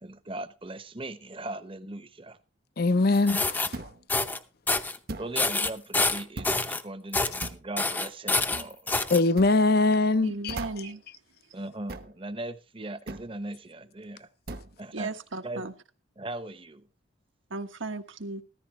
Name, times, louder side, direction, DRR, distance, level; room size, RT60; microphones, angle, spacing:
voice 1, 0.0-2.4 5.2-9.0 11.5-14.3 14.8-15.1 15.4-15.7 16.2-16.9, right 2 dB, 25° right, 0.9 m, -39 dB
voice 2, 2.8-3.8 9.1-10.6, left 3 dB, 50° left, 0.6 m, -22 dB
sound 1, 3.1-3.7 4.1-4.4 4.7-5.0 5.4-6.8 7.1-7.5 7.8-9.2, left 3 dB, 10° left, 0.6 m, -27 dB
sound 2, 3.7-4.0 5.1-5.4 6.4-6.6 7.4-7.7 8.5-8.7 9.4-9.5 10.5-10.9 11.9-12.2 13.1-13.3 14.5-14.8, right 2 dB, 50° right, 1.0 m, -39 dB
voice 3, 10.2-11.0 14.9-15.7 17.5-18.4, right 3 dB, 75° right, 1.3 m, -35 dB
14.5 x 14.0 x 3.1 m
head